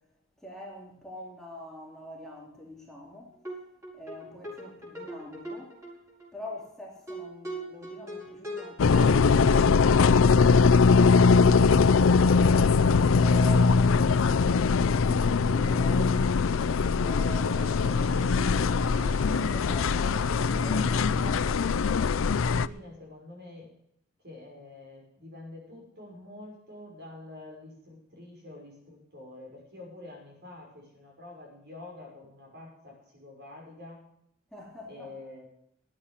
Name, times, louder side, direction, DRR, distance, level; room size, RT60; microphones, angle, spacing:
voice 1, 0.4-3.3 3.9-5.7 6.3-9.7 10.1-12.6 13.2-16.5 17.0-21.1 34.5-35.1, left 1 dB, ahead, -3 dB, 3.0 m, -44 dB
sound 1, 3.4-3.6 3.8-6.3 6.6-6.7 7.1-10.6 11.1-11.2 11.4-11.6 11.8-12.5, right 1 dB, 15° right, 6.5 m, -40 dB
sound 2, 8.8-22.7, left 4 dB, 75° left, 0.5 m, -21 dB
sound 3, 15.6-21.3, right 2 dB, 80° right, 1.9 m, -46 dB
voice 2, 21.2-23.7 24.2-34.0 34.9-35.4, left 2 dB, 55° right, 0 dB, 5.8 m, -47 dB
13.0 x 8.9 x 7.3 m, 0.73 s
head